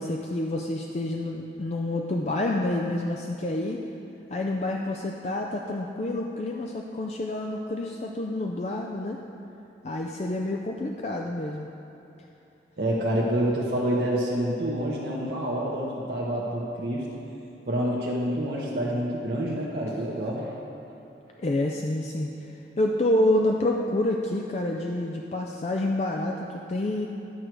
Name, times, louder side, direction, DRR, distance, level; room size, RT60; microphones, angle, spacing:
voice 1, 0.0-3.8 4.3-9.2 9.8-11.7 21.4-27.1, left 1 dB, 40° left, 1 dB, 0.4 m, -28 dB
voice 2, 12.8-17.0 17.7-20.5, right 1 dB, 70° right, -5 dB, 1.0 m, -27 dB
11.0 x 6.3 x 4.6 m, 2.8 s
head